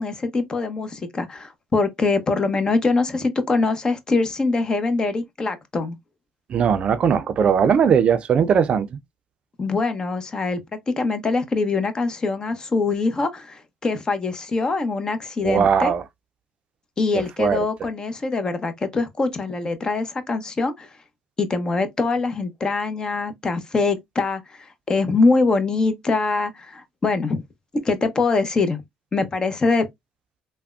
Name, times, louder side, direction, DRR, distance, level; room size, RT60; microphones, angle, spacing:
voice 1, 0.0-6.0 9.6-10.6 10.9-15.9 17.0-20.9 21.4-27.4 27.8-28.8 29.1-29.9, left 3 dB, 30° left, 0.7 m, -23 dB
voice 2, 6.5-9.0 15.4-16.0 17.4-17.6, right 7 dB, 50° right, 0.4 m, -19 dB
3.4 x 2.1 x 2.4 m
supercardioid pair, 75°, 3 cm